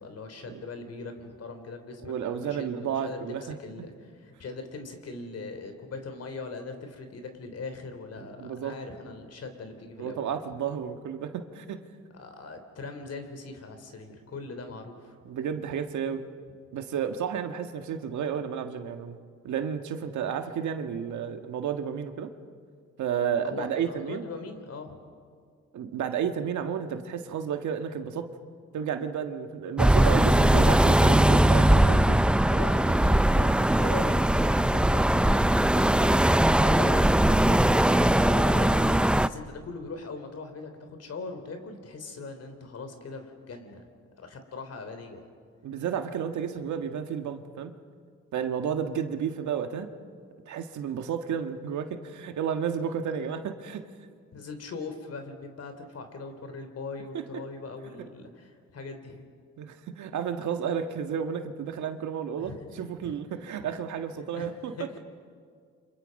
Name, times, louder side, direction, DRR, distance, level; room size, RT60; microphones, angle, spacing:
voice 1, 0.0-10.4 12.1-15.2 23.4-25.0 32.5-43.8 44.2-45.2 54.3-59.2 62.4-62.7 63.0-63.2 63.6-63.7 64.3-65.0, left 3 dB, 55° left, 7 dB, 3.5 m, -40 dB
voice 2, 2.0-3.9 8.4-8.8 10.0-11.8 15.2-16.2 16.7-19.2 19.4-22.3 23.0-24.3 25.7-28.3 28.7-32.2 45.6-47.7 48.3-49.9 50.5-53.8 59.6-65.0, right 8 dB, 75° right, 7 dB, 1.6 m, -32 dB
sound 1, 29.8-39.3, right 1 dB, 5° right, 0.5 m, -20 dB
29.0 x 26.0 x 5.4 m, 2.1 s
cardioid pair, 90°, 30 cm